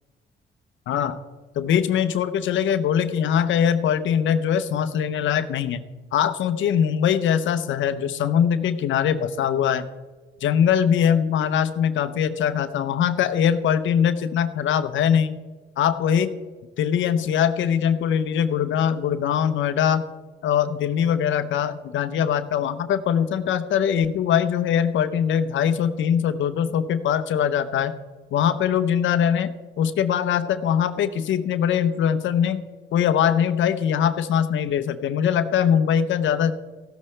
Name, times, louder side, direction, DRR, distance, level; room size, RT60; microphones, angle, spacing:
voice 1, 0.9-1.2 1.6-5.8 6.1-9.9 10.4-15.3 15.8-16.4 16.8-20.1 20.4-27.9 28.3-29.5 29.8-32.6 32.9-36.5, left 8 dB, 75° left, 11 dB, 0.7 m, -22 dB
14.0 x 12.0 x 3.3 m, 1.3 s
cardioid pair, 90°, 20 cm